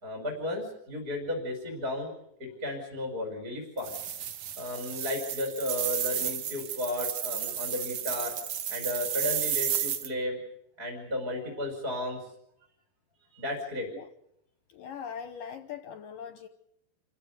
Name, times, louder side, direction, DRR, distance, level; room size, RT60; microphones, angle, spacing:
voice 1, 0.0-2.1 2.4-4.0 4.6-8.3 8.7-10.4 10.8-12.3 13.3-13.9, left 1 dB, 20° right, 1 dB, 5.2 m, -34 dB
sound 1, 3.8-10.1, right 9 dB, 60° right, 2.1 m, -32 dB
voice 2, 14.7-16.5, left 7 dB, 70° left, 8 dB, 2.4 m, -41 dB
28.5 x 16.5 x 9.5 m, 0.78 s
omnidirectional pair, 4.8 m